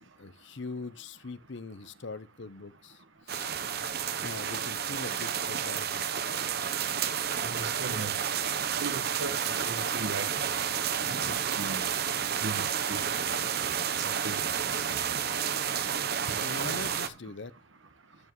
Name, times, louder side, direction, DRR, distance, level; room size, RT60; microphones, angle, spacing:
voice 1, 0.0-3.5 4.2-6.1 16.4-17.5, left 3 dB, 60° left, 0.7 m, -42 dB
sound 1, 3.3-17.1, right 8 dB, 50° right, 0.8 m, -31 dB
voice 2, 7.4-8.1 8.8-9.4 9.7-10.5 11.3-11.9 12.4-13.2 13.6-14.8 16.3-16.4, right 3 dB, 70° right, 1.4 m, -38 dB
13.5 x 7.3 x 3.1 m
head